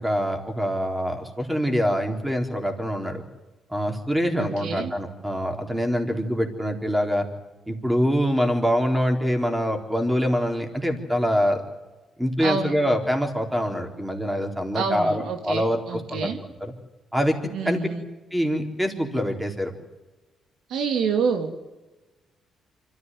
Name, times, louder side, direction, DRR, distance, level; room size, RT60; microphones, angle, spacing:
voice 1, 0.0-3.2 3.7-7.3 7.7-11.6 12.2-16.3 16.6-16.7 17.1-17.8 18.3-19.7, equal, 5° right, 3 dB, 4.0 m, -25 dB
voice 2, 4.4-4.9 12.4-12.7 14.7-16.4 17.5-18.0 20.7-21.5, right 6 dB, 80° right, 5 dB, 2.6 m, -27 dB
25.5 x 14.5 x 9.4 m, 1.1 s
cardioid pair, 90°, 0 cm